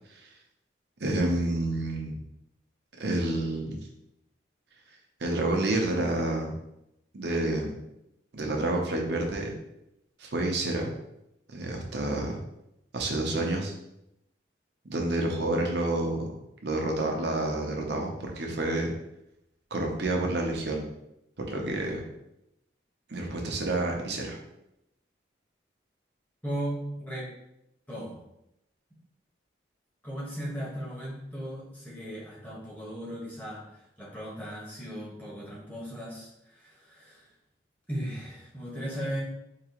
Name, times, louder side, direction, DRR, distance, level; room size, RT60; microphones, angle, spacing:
voice 1, 1.0-2.2 3.0-3.9 5.2-6.6 7.1-7.7 8.3-9.5 10.2-10.9 11.5-12.4 12.9-13.7 14.8-16.3 16.6-18.9 19.7-20.9 21.4-22.0 23.1-24.4, right 2 dB, 65° right, 1 dB, 0.8 m, -29 dB
voice 2, 26.4-27.3 27.9-28.2 30.0-33.6 34.0-37.3 37.9-39.2, equal, 10° left, -6 dB, 1.2 m, -37 dB
4.7 x 2.9 x 3.0 m, 0.84 s
head